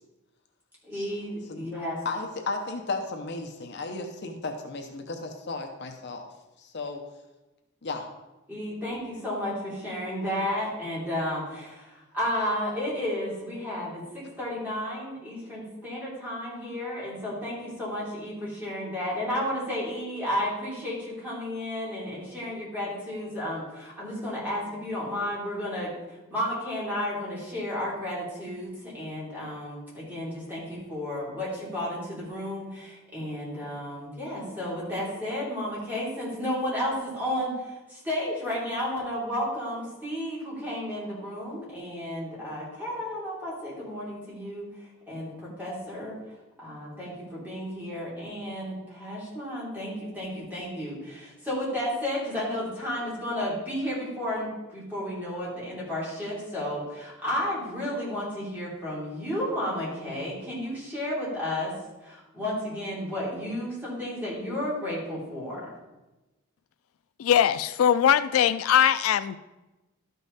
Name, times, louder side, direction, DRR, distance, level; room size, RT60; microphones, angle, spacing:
voice 1, 0.8-2.0 8.5-25.9 26.3-46.2 46.6-61.7 62.0-65.7, left 1 dB, 10° right, -7 dB, 3.4 m, -32 dB
voice 2, 2.0-6.2 6.6-7.0 7.8-8.1, left 3 dB, 55° left, 4 dB, 0.8 m, -34 dB
voice 3, 67.2-69.4, left 9 dB, 85° left, 14 dB, 0.3 m, -21 dB
12.0 x 5.5 x 4.1 m, 1.1 s
head